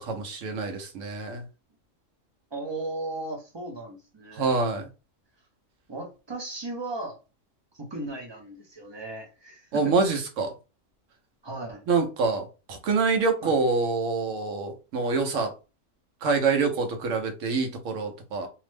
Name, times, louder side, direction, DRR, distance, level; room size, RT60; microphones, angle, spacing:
voice 1, 0.0-1.4 4.3-4.9 9.7-10.5 11.9-15.5 16.2-18.5, right 4 dB, 75° right, 4 dB, 1.0 m, -26 dB
voice 2, 2.5-4.6 5.9-7.2 7.7-10.0 11.4-11.9 13.4-13.6, right 2 dB, 35° right, 2 dB, 0.4 m, -36 dB
2.8 x 2.0 x 3.2 m, 0.31 s
omnidirectional pair, 1.3 m